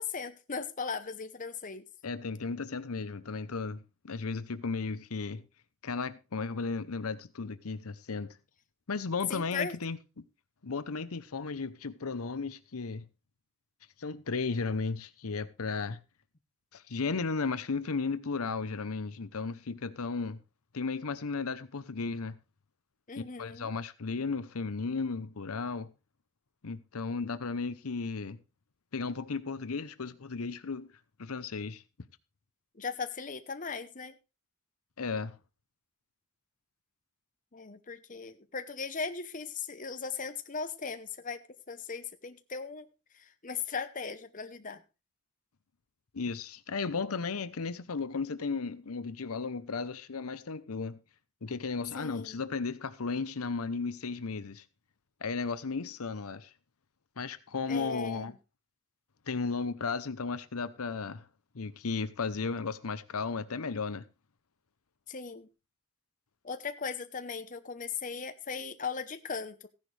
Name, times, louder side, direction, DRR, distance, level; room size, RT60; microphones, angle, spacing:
voice 1, 0.0-1.8 9.3-9.7 23.1-23.7 32.7-34.1 37.5-42.9 43.1-44.8 52.0-52.4 57.7-58.2 65.1-65.5 66.4-69.7, left 5 dB, 35° left, 0.9 m, -38 dB
voice 2, 2.0-5.4 5.8-8.3 8.9-10.2 10.6-13.0 14.0-16.0 16.7-20.4 20.7-22.4 23.4-25.9 26.6-28.4 28.9-30.9 31.2-31.8 35.0-35.4 46.1-51.0 51.4-54.6 55.2-56.5 57.2-58.3 59.3-61.2 61.5-64.0, left 4 dB, 80° left, 0.8 m, -35 dB
15.0 x 10.5 x 3.3 m
head